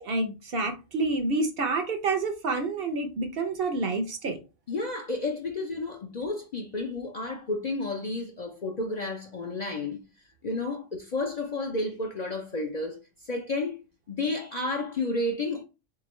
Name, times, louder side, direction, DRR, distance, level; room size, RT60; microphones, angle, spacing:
voice 1, 0.0-4.4, right 3 dB, 55° right, 0.8 m, -28 dB
voice 2, 4.7-10.0 10.4-13.0 13.2-13.8 14.1-15.6, left 2 dB, 50° left, 0.5 m, -31 dB
3.7 x 3.7 x 3.0 m
omnidirectional pair, 1.3 m